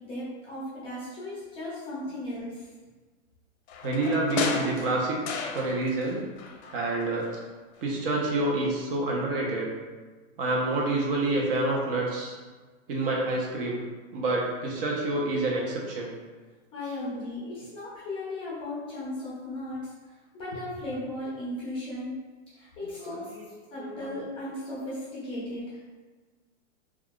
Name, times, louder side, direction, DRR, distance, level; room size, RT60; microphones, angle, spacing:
voice 1, 0.0-2.6 16.7-19.9 20.3-22.2 22.5-23.2 23.7-25.8, left 1 dB, 15° left, -8 dB, 0.6 m, -36 dB
sound 1, 3.7-6.1 6.4-7.5 7.8-7.9, left 4 dB, 60° left, 0.5 m, -34 dB
voice 2, 3.8-5.2 5.5-6.2 6.7-7.3 7.8-9.7 10.4-12.3 12.9-13.8 14.1-16.1 16.8-17.0 22.9-23.5 23.7-24.2, right 2 dB, 50° right, -2 dB, 0.7 m, -28 dB
2.4 x 2.2 x 3.5 m, 1.3 s
hypercardioid pair, 150°, 37 cm